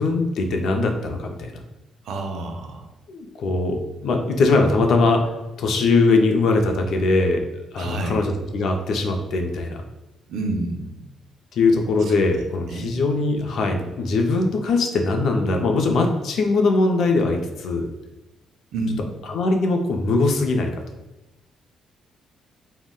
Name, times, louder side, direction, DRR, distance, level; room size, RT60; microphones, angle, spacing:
voice 1, 0.0-1.6 3.1-5.2 5.6-7.4 7.7-9.8 11.5-17.9 19.3-20.8, left 3 dB, 70° left, 3 dB, 0.4 m, -21 dB
voice 2, 2.0-2.9 7.7-8.3 10.3-11.1 12.0-12.2 12.7-13.0 18.7-19.1, right 2 dB, 75° right, 4 dB, 0.4 m, -29 dB
3.6 x 2.1 x 2.2 m, 1.0 s
cardioid pair, 90°, 0 cm